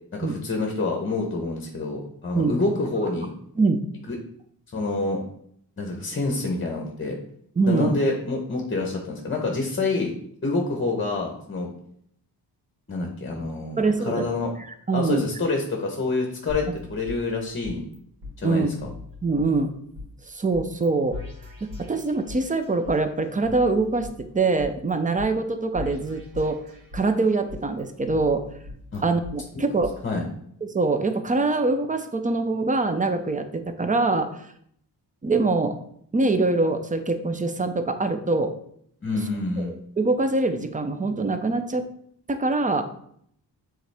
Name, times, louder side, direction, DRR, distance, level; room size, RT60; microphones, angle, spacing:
voice 1, 0.1-3.3 4.1-4.2 4.7-5.2 5.8-7.2 7.7-10.1 10.4-11.7 12.9-14.5 14.9-16.6 16.9-17.9 18.4-18.9 28.9-29.0 29.5-29.7 30.0-30.2 39.0-39.8, left 3 dB, 30° left, 1 dB, 0.9 m, -27 dB
voice 2, 7.6-7.9 13.8-14.3 14.9-15.2 18.4-18.7 19.2-19.7 20.3-21.2 21.9-24.1 24.3-26.6 26.9-28.4 29.0-29.9 30.6-34.3 35.2-35.8 36.1-38.5 39.6-41.8 42.3-42.8, right 3 dB, 20° right, 8 dB, 0.5 m, -23 dB
sound 1, 16.5-18.0 18.2-18.3 18.8-20.1 20.5-20.9 21.1-23.0 23.4-24.9 25.2-25.3 25.7-27.1 27.5-29.3 29.8-29.9, left 3 dB, 80° right, 2.5 m, -40 dB
7.9 x 3.8 x 3.4 m, 0.68 s
wide cardioid pair, 135°, 43 cm